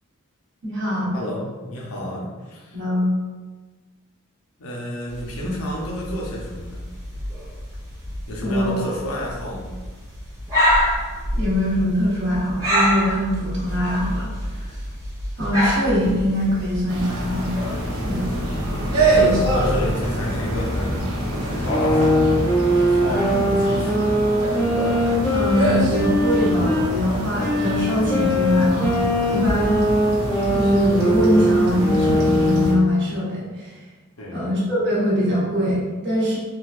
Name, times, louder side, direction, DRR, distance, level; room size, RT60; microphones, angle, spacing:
voice 1, 0.6-1.1 2.7-3.1 5.4-5.5 8.4-8.7 11.3-14.3 15.4-17.6 17.9-18.3 19.1-19.3 23.1-23.2 25.3-29.8 30.5-33.7 34.3-36.4, equal, 55° right, -7 dB, 1.3 m, -22 dB
voice 2, 1.1-2.8 4.6-6.8 8.3-9.8 18.2-21.0 21.5-22.5 22.9-24.1 34.2-34.5, left 1 dB, 75° left, -3 dB, 0.8 m, -31 dB
sound 1, 5.1-21.7, equal, 15° right, 1.1 m, -28 dB
sound 2, 16.9-32.7, right 1 dB, 90° right, 0.7 m, -25 dB
sound 3, 21.7-26.9 27.4-33.0, equal, 10° left, 0.5 m, -21 dB
4.0 x 2.5 x 2.4 m, 1.3 s
head